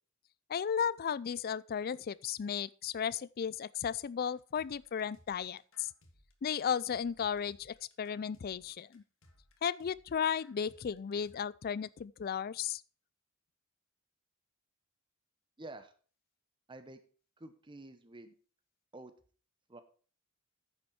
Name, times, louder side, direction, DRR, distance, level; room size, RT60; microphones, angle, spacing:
voice 1, 0.5-5.9 6.4-9.0 9.6-12.8, left 7 dB, 45° left, 0.4 m, -35 dB
sound 1, 4.3-11.4, left 1 dB, 75° left, 1.7 m, -64 dB
voice 2, 15.6-15.9 16.7-17.0 17.4-18.3 18.9-19.1 19.7-19.8, right 2 dB, 25° right, 0.8 m, -49 dB
9.6 x 7.3 x 4.7 m
head